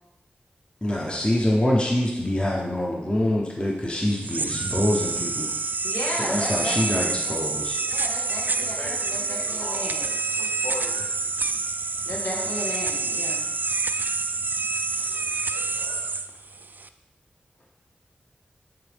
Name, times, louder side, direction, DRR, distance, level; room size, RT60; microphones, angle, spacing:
voice 1, 0.8-5.5 6.1-7.8, left 1 dB, 25° left, -2 dB, 1.0 m, -25 dB
sound 1, 4.1-16.9, right 3 dB, 55° right, 0.4 m, -27 dB
voice 2, 5.8-6.8 7.2-7.4 7.9-10.0 12.0-13.5, left 1 dB, 80° left, -4 dB, 1.6 m, -34 dB
voice 3, 8.5-11.1 15.1-15.2 15.5-16.0, left 1 dB, 45° left, -2 dB, 1.7 m, -40 dB
9.3 x 3.8 x 3.6 m, 1.0 s
cardioid pair, 50°, 4 cm